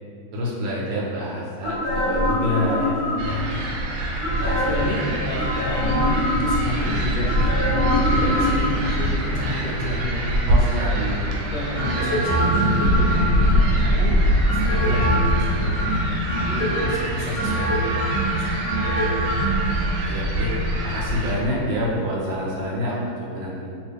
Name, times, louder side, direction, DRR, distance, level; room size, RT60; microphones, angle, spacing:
voice 1, 0.3-3.0 4.4-5.4 5.8-6.0 10.5-11.4 20.0-20.5 20.8-23.6, left 1 dB, 70° right, -5 dB, 1.2 m, -27 dB
sound 1, 1.6-3.4 4.2-4.9 5.3-6.8 7.2-8.9 11.7-13.9 14.5-15.4 15.8-16.9 17.3-19.7 20.0-20.1, equal, 35° left, 0.5 m, -24 dB
voice 2, 3.2-3.6 4.6-7.3 7.7-10.9 11.5-14.2 14.5-15.8 16.4-18.1 18.3-19.1, left 1 dB, 70° left, -4 dB, 1.1 m, -30 dB
sound 2, 3.2-21.3, equal, 90° right, 1.5 m, -24 dB
3.0 x 2.8 x 3.4 m, 2.6 s
omnidirectional pair, 2.3 m